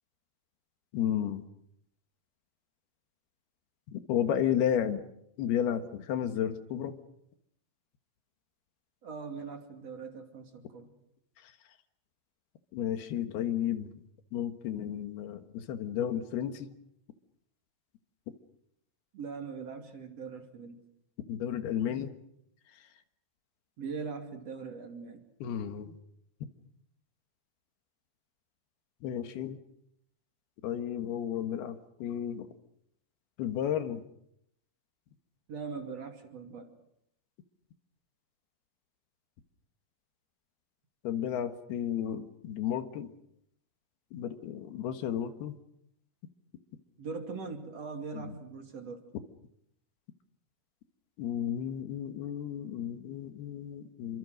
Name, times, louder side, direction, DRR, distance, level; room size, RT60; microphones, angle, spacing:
voice 1, 0.9-1.4 3.9-5.1 5.4-7.0 12.7-13.9 14.3-16.7 21.3-22.1 25.4-26.0 29.0-29.6 30.6-32.5 33.4-34.0 41.0-43.1 44.1-45.6 48.1-48.3 51.2-54.2, left 9 dB, 80° left, 9 dB, 3.5 m, -32 dB
voice 2, 9.0-10.9 19.1-20.8 23.8-25.2 35.5-36.7 47.0-49.0, right 5 dB, 45° right, 5 dB, 3.4 m, -41 dB
28.5 x 24.5 x 6.5 m, 0.76 s
omnidirectional pair, 4.4 m